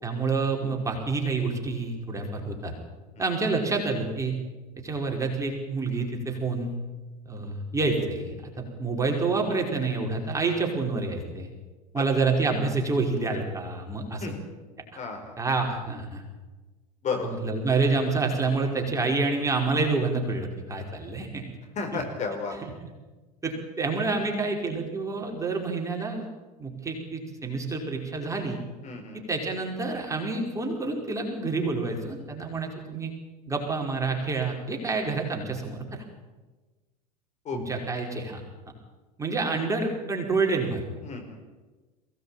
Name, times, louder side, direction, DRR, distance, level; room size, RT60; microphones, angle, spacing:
voice 1, 0.0-2.7 3.2-4.3 4.8-6.8 7.2-11.5 11.9-14.3 14.9-15.0 15.4-16.2 17.2-21.4 21.9-22.0 22.6-22.7 23.4-26.2 26.6-28.6 29.3-33.1 33.5-36.0 37.5-38.4 39.2-40.8, right 3 dB, 15° right, 1 dB, 5.0 m, -28 dB
voice 2, 14.9-15.4 17.0-17.3 21.7-22.6 28.8-29.2 37.4-37.6 41.0-41.4, left 4 dB, 35° left, 4 dB, 4.8 m, -32 dB
22.5 x 17.5 x 9.0 m, 1.2 s
figure-of-eight pair, 80°, 21 cm